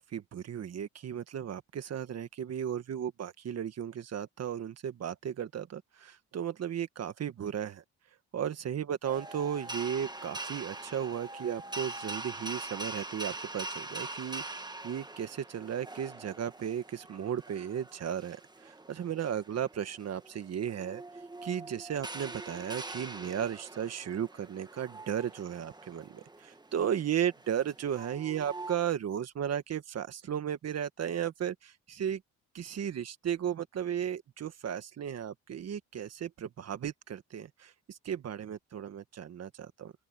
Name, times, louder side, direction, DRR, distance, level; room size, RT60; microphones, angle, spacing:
voice 1, 0.0-7.8 8.3-18.4 18.6-21.0 21.4-32.2 32.5-39.9, right 9 dB, 55° right, 1.7 m, -35 dB
sound 1, 9.0-28.8, right 2 dB, 15° right, 1.6 m, -43 dB
open air
cardioid pair, 90°, 30 cm